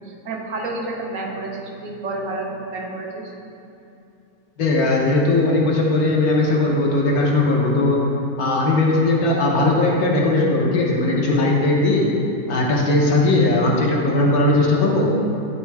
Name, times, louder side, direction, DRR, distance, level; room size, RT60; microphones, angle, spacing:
voice 1, 0.0-3.2, right 2 dB, 60° right, 0 dB, 1.0 m, -30 dB
voice 2, 4.6-8.0 8.4-12.1 12.5-15.1, left 2 dB, 65° left, -2 dB, 1.3 m, -18 dB
9.5 x 3.6 x 4.6 m, 2.7 s
omnidirectional pair, 1.8 m